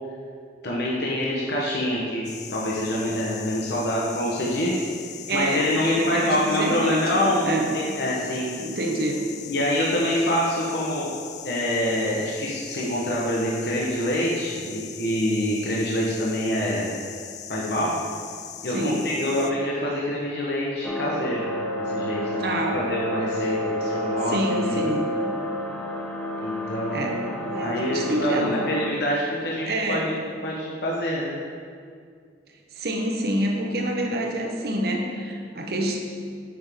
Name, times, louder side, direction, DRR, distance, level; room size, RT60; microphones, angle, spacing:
voice 1, 0.6-4.9 5.3-8.5 9.5-11.1 11.4-16.9 17.5-17.9 18.6-21.5 21.8-24.9 26.4-27.3 27.6-30.2 30.4-31.4, left 1 dB, 60° left, -5 dB, 1.0 m, -26 dB
sound 1, 2.2-19.5, left 9 dB, 40° left, 0.3 m, -40 dB
voice 2, 5.3-7.7 8.6-9.3 18.7-19.0 22.4-22.8 24.3-25.1 26.9-27.2 27.5-28.6 29.7-30.1 32.7-36.0, right 1 dB, 55° right, 2 dB, 0.8 m, -27 dB
sound 2, 20.8-28.9, equal, 10° left, 0.7 m, -30 dB
8.6 x 6.1 x 3.6 m, 2.1 s
head